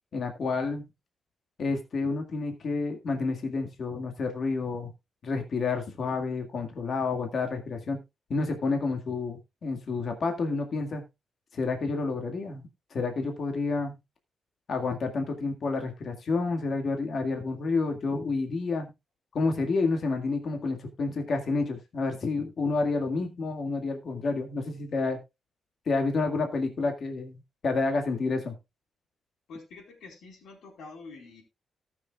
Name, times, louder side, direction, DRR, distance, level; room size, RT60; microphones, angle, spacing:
voice 1, 0.1-0.9 1.6-4.9 5.2-8.0 8.3-11.0 11.5-12.6 12.9-14.0 14.7-18.9 19.3-25.2 25.9-28.6, left 3 dB, 40° left, 4 dB, 2.0 m, -29 dB
voice 2, 29.5-31.4, left 3 dB, 70° left, 0 dB, 4.4 m, -46 dB
18.5 x 6.6 x 2.4 m, 0.23 s
wide cardioid pair, 180°, 0 cm